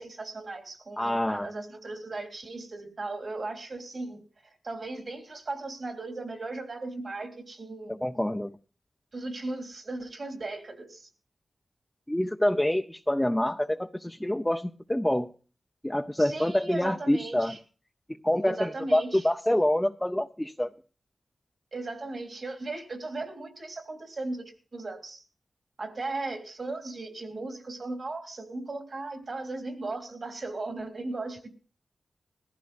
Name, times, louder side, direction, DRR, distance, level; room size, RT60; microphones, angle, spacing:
voice 1, 0.0-8.0 9.1-11.1 16.2-17.6 18.4-19.3 21.7-25.2 25.8-31.5, right 2 dB, 55° right, 3.2 m, -37 dB
voice 2, 1.0-1.5 7.9-8.5 12.1-15.3 15.8-17.5 18.2-20.7, left 1 dB, 10° left, 0.6 m, -26 dB
21.5 x 14.5 x 2.5 m
wide cardioid pair, 80°, 0 cm